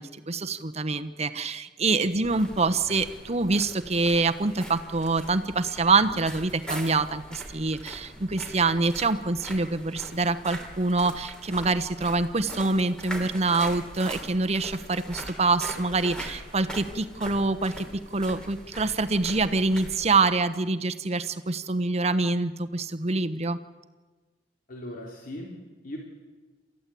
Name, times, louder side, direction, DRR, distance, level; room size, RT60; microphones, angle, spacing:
voice 1, 0.0-23.6, right 3 dB, 40° right, 9 dB, 1.1 m, -25 dB
sound 1, 2.2-20.2, right 1 dB, 5° left, 3.3 m, -41 dB
voice 2, 24.7-26.0, left 1 dB, 55° left, -1 dB, 3.4 m, -39 dB
28.0 x 14.0 x 8.5 m, 1.3 s
head